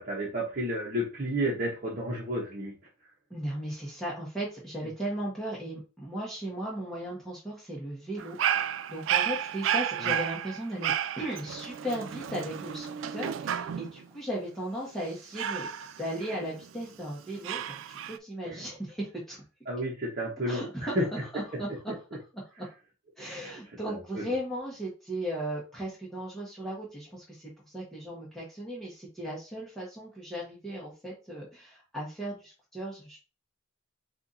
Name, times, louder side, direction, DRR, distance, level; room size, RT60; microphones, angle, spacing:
voice 1, 0.0-2.7 10.0-10.1 18.4-18.6 19.7-21.0 23.4-23.5 23.9-24.3, equal, 45° right, -4 dB, 1.1 m, -32 dB
voice 2, 3.3-15.7 16.0-19.4 20.5-21.0 21.3-21.7 22.6-22.7 23.2-33.2, right 1 dB, ahead, -6 dB, 1.2 m, -36 dB
Dog, 8.2-14.0 15.4-16.8 17.4-18.2, right 9 dB, 70° right, 0.3 m, -32 dB
4.4 x 2.6 x 4.0 m, 0.32 s
head